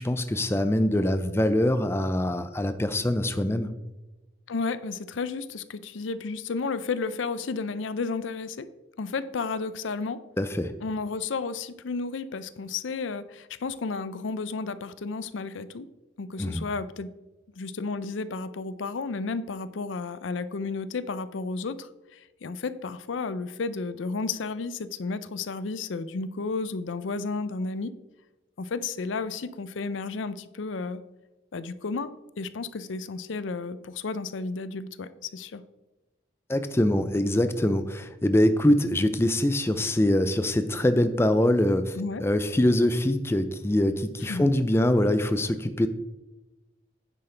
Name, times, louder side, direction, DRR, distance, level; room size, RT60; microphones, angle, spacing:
voice 1, 0.0-3.7 10.4-10.7 16.4-16.7 36.5-45.9, left 1 dB, 15° left, 10 dB, 0.4 m, -24 dB
voice 2, 4.5-8.7 9.0-10.2 10.8-15.9 16.2-17.1 17.6-27.9 28.6-31.0 31.5-32.1 32.4-35.6 42.0-42.2 44.3-44.4, left 4 dB, 80° left, 14 dB, 0.5 m, -32 dB
9.9 x 7.5 x 3.3 m, 1.0 s
head